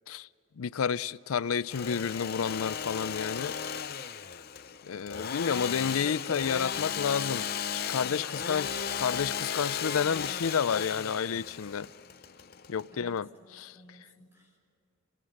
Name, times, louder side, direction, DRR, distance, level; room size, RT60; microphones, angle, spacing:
voice 1, 0.6-3.6 4.9-8.7 9.0-11.9 12.7-13.8, left 7 dB, 90° left, 0.5 m, -30 dB
Engine / Sawing, 1.5-13.2, left 7 dB, 45° left, 0.6 m, -35 dB
voice 2, 8.3-8.6 12.9-14.6, equal, 10° right, 5.4 m, -55 dB
29.0 x 23.5 x 6.5 m
head